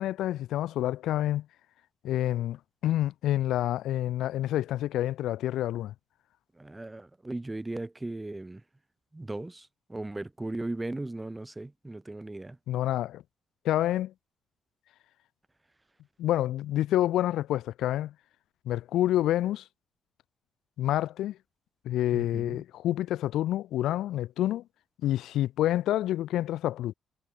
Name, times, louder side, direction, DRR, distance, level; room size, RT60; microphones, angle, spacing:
voice 1, 0.0-1.4 2.0-5.9 12.7-13.2 13.6-14.1 16.2-18.1 18.7-19.6 20.8-21.4 21.8-24.6 25.0-26.9, left 13 dB, 85° left, 0.9 m, -28 dB
voice 2, 6.6-8.6 9.1-12.6 22.1-22.6, right 2 dB, 15° right, 3.2 m, -37 dB
cardioid pair, 90°, 0 cm